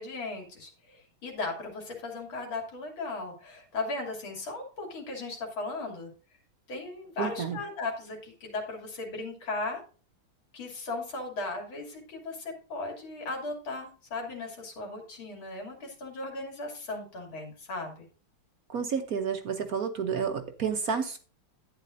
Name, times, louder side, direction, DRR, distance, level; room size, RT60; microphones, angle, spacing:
voice 1, 0.0-6.1 6.7-9.8 10.5-18.0, left 3 dB, 85° left, 1 dB, 3.6 m, -37 dB
voice 2, 7.2-7.6 18.7-21.2, right 6 dB, 55° right, 6 dB, 1.1 m, -30 dB
11.5 x 9.2 x 2.6 m, 0.38 s
omnidirectional pair, 2.2 m